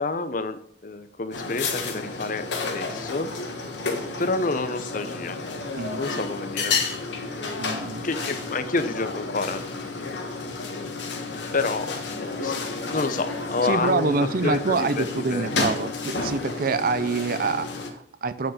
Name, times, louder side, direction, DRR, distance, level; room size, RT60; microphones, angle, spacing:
voice 1, 0.0-3.3 4.2-5.4 5.9-6.8 8.0-10.2 11.5-15.8, left 3 dB, 50° left, 10 dB, 0.8 m, -29 dB
sound 1, 1.3-17.9, left 4 dB, 85° left, 1.6 m, -31 dB
voice 2, 5.7-6.1 7.6-8.1 13.6-18.5, right 4 dB, 55° right, 13 dB, 0.6 m, -26 dB
9.1 x 4.8 x 6.5 m, 0.62 s
head